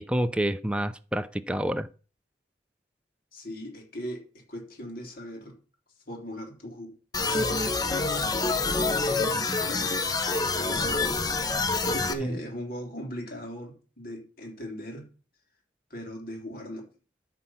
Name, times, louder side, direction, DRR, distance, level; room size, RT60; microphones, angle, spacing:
voice 1, 0.0-1.9 12.2-12.4, right 1 dB, 5° right, 0.5 m, -28 dB
voice 2, 3.3-5.6 6.1-7.0 7.2-8.8 9.7-9.9 10.3-10.9 11.9-15.1 15.9-16.9, equal, 50° left, 3.4 m, -39 dB
sound 1, 7.1-12.1, left 3 dB, 20° left, 0.9 m, -26 dB
13.5 x 4.6 x 5.6 m
head